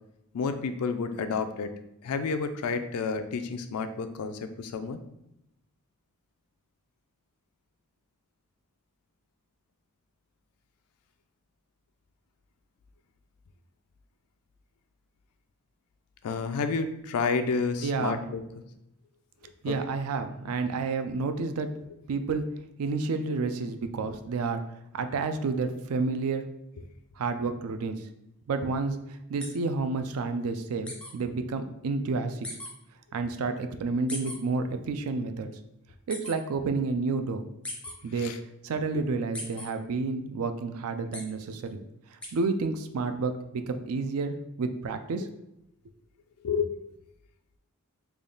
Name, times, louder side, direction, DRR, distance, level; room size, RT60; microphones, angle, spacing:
voice 1, 0.3-1.7 2.0-5.0 16.2-18.4 19.7-19.8 38.2-38.4 46.4-46.7, left 5 dB, 85° left, 8 dB, 0.4 m, -30 dB
voice 2, 17.8-18.2 19.6-21.7 22.1-22.4 22.8-24.6 24.9-26.4 27.2-28.0 28.5-29.0 29.3-32.5 33.1-35.5 36.1-37.4 38.0-38.3 38.6-41.8 42.3-45.3, right 4 dB, 75° right, 8 dB, 0.4 m, -30 dB
sound 1, 29.4-29.5 30.9-31.1 32.4-32.7 34.1-34.4 36.1-36.3 37.6-37.9 39.3-39.7 41.1-41.2 42.2-42.3, left 1 dB, 5° left, 0.5 m, -37 dB
3.4 x 2.3 x 3.8 m, 0.85 s
head